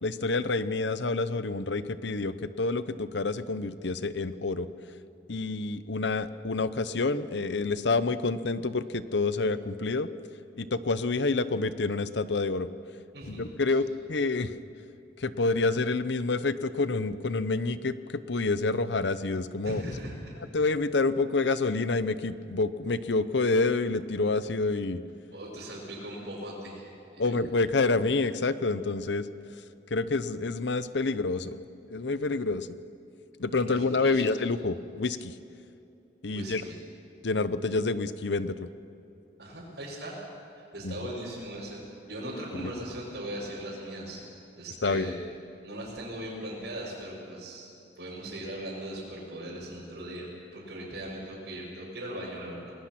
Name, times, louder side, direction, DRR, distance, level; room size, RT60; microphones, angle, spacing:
voice 1, 0.0-4.7 5.3-10.1 10.6-12.7 13.3-14.5 15.2-19.9 20.5-25.0 27.2-29.3 29.9-31.6 31.9-32.7 33.4-35.3 36.2-36.6 37.2-38.7 40.8-41.1 42.5-42.7 44.8-45.1, left 3 dB, 80° left, 14 dB, 0.8 m, -28 dB
voice 2, 19.6-20.3 25.3-26.9 27.1-27.3 33.7-34.2 36.3-36.8 39.4-40.3 40.6-41.8 42.1-44.2 44.6-45.1 45.6-47.7 48.0-52.7, right 1 dB, 80° right, -9 dB, 5.7 m, -39 dB
28.5 x 19.5 x 6.0 m, 2.8 s
head